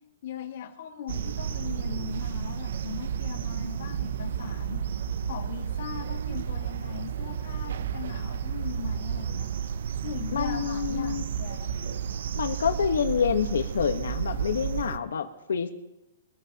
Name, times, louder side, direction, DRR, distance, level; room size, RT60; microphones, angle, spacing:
voice 1, 0.2-4.8 5.2-9.5 10.0-11.7, left 9 dB, 40° left, 2 dB, 1.8 m, -39 dB
sound 1, 1.1-15.0, right 8 dB, 55° right, 0.5 m, -32 dB
voice 2, 10.3-11.2 12.3-15.7, left 7 dB, 90° left, 6 dB, 1.2 m, -27 dB
23.5 x 15.5 x 2.9 m, 0.91 s
hypercardioid pair, 180°, 0 cm